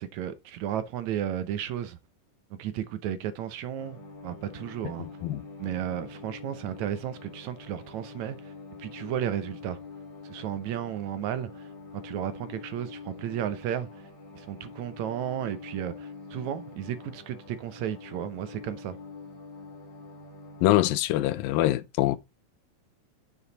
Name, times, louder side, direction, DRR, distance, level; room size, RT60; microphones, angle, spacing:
voice 1, 0.0-2.0 2.6-4.0 4.2-5.1 5.6-8.5 8.8-9.8 10.2-11.6 11.9-14.0 14.3-19.0, right 10 dB, 75° right, 1.7 m, -33 dB
sound 1, 3.8-21.0, left 3 dB, 25° left, 2.9 m, -45 dB
voice 2, 5.0-5.5 20.6-22.2, left 15 dB, 80° left, 2.4 m, -24 dB
7.2 x 6.9 x 4.0 m
omnidirectional pair, 4.1 m